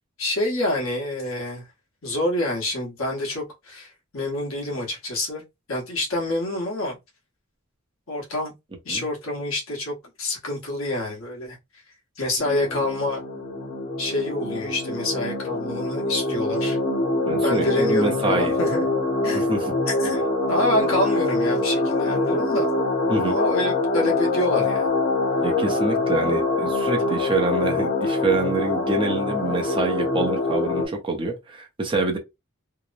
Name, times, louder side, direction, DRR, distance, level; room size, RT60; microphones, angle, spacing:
voice 1, 0.2-1.6 2.0-5.4 5.7-7.0 8.1-8.5 8.8-11.6 12.2-13.2 14.0-16.8 17.4-18.8 19.2-19.5 19.9-20.2 20.5-22.7 23.2-24.9, left 1 dB, 75° left, 1.1 m, -27 dB
sound 1, 12.4-30.9, left 2 dB, 45° left, 0.9 m, -24 dB
voice 2, 17.3-18.5 19.3-19.7 23.1-23.4 25.4-32.2, right 3 dB, 25° right, 0.6 m, -26 dB
2.8 x 2.0 x 2.4 m
head